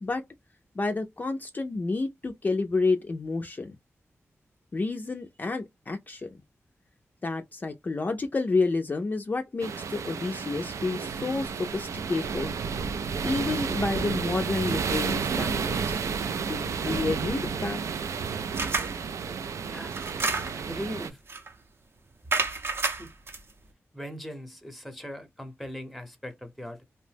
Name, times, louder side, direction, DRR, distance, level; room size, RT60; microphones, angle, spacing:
voice 1, 0.8-3.8 4.7-6.4 7.2-12.5 13.2-16.0 16.5-17.8, left 3 dB, 35° left, 0.4 m, -30 dB
sound 1, 9.6-21.1, right 5 dB, 90° right, 0.3 m, -31 dB
sound 2, 18.5-19.0 19.9-20.7 21.3-21.5 22.3-23.4, right 4 dB, 50° right, 0.6 m, -29 dB
voice 2, 20.5-21.2 23.0-23.1 23.9-26.8, equal, ahead, 0.7 m, -39 dB
2.7 x 2.0 x 3.2 m
wide cardioid pair, 95°, 5 cm